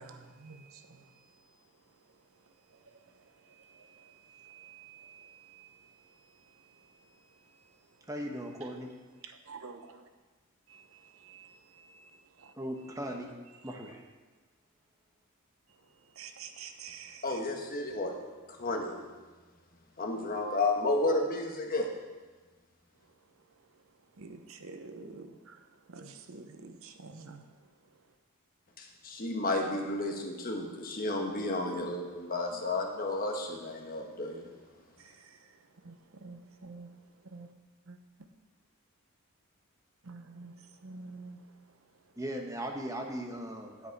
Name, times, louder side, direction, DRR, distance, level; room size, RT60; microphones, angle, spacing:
voice 1, 0.1-0.6 4.5-4.9 9.5-9.8 11.3-11.4 16.2-17.2 24.2-25.3 25.9-27.4 31.7-31.8 35.9-36.0 36.2-36.4 36.6-36.9 37.3-37.5 37.9-38.0 40.1-40.5 40.8-41.4, right 4 dB, 65° right, 0.7 m, -46 dB
voice 2, 8.1-8.9 12.5-13.3 13.6-14.0 42.2-43.9, equal, 15° right, 1.0 m, -38 dB
voice 3, 17.2-19.0 20.0-21.9 28.8-34.5, left 2 dB, 40° left, 1.2 m, -32 dB
9.3 x 8.4 x 4.6 m
head